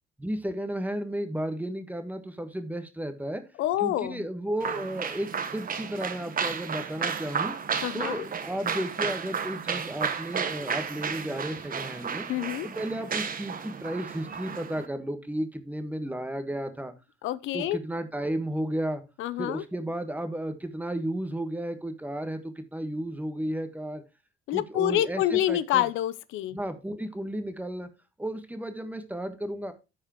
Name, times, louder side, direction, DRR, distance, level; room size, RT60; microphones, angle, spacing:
voice 1, 0.2-3.4 3.8-7.5 7.9-12.3 12.6-16.9 17.5-19.0 19.4-24.0 24.5-25.9 26.5-27.9 28.2-29.7, right 1 dB, 10° right, 1.4 m, -33 dB
voice 2, 3.6-4.2 7.8-8.2 12.3-12.7 17.2-17.8 19.2-19.6 24.5-26.6, left 12 dB, 85° left, 0.6 m, -27 dB
sound 1, 4.6-14.9, right 6 dB, 45° right, 1.1 m, -33 dB
13.5 x 4.8 x 3.0 m
cardioid pair, 90°, 20 cm